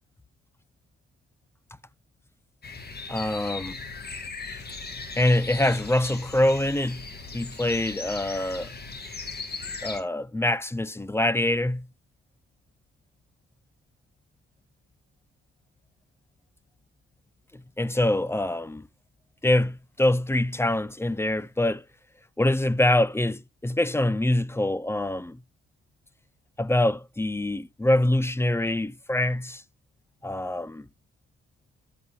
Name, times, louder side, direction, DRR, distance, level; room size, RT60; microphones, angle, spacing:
sound 1, 2.6-10.0, left 4 dB, 30° left, 1.7 m, -38 dB
voice 1, 3.1-3.7 5.2-7.0 7.3-8.7 9.8-11.9 17.5-18.9 19.4-21.8 22.4-25.4 26.6-29.6 30.2-30.9, left 1 dB, 10° left, 0.4 m, -25 dB
12.5 x 7.0 x 2.2 m
cardioid pair, 90°, 30 cm